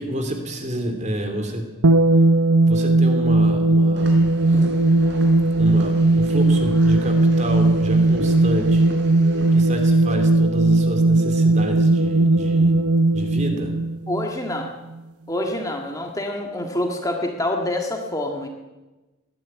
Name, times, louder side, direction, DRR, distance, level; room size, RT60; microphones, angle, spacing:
voice 1, 0.0-1.7 2.7-4.1 4.5-4.7 5.5-8.9 9.5-12.8 13.1-13.7, right 1 dB, 30° right, 5 dB, 3.3 m, -29 dB
sound 1, 1.8-14.7, right 2 dB, 85° right, 0.9 m, -18 dB
sound 2, 4.0-10.1, right 1 dB, 55° right, 4.6 m, -37 dB
voice 2, 14.1-14.8 15.3-18.5, left 1 dB, 15° left, 2 dB, 1.7 m, -26 dB
19.5 x 14.0 x 9.5 m, 1.1 s
head